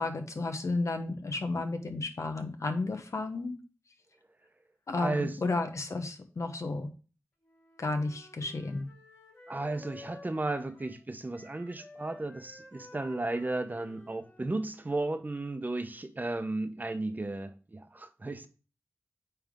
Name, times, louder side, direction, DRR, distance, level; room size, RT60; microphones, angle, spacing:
voice 1, 0.0-3.6 4.9-6.9 7.8-8.9, left 3 dB, 70° left, 1.0 m, -32 dB
voice 2, 4.9-5.4 9.5-18.5, right 2 dB, 35° right, 0.8 m, -34 dB
Wind instrument woodwind instrument, 7.4-11.1 11.3-15.2, left 2 dB, 40° left, 3.3 m, -54 dB
8.9 x 3.5 x 3.6 m
wide cardioid pair, 50°, 5 cm